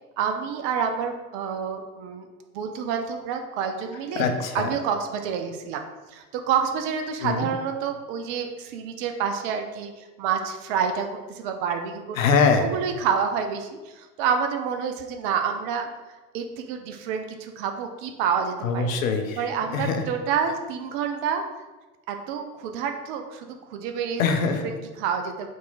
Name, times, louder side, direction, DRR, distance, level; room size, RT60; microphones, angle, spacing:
voice 1, 0.2-2.3 2.5-4.3 4.5-5.8 6.1-12.2 12.6-15.9 16.3-18.9 19.4-21.4 22.1-23.5 23.7-24.2 24.6-25.5, right 7 dB, 40° right, 5 dB, 0.4 m, -28 dB
voice 2, 4.2-4.7 7.2-7.5 12.2-12.7 18.6-19.4 19.7-20.0 24.2-24.7, left 5 dB, 65° left, 6 dB, 0.7 m, -23 dB
3.6 x 2.9 x 3.9 m, 1.2 s
figure-of-eight pair, 80°, 43 cm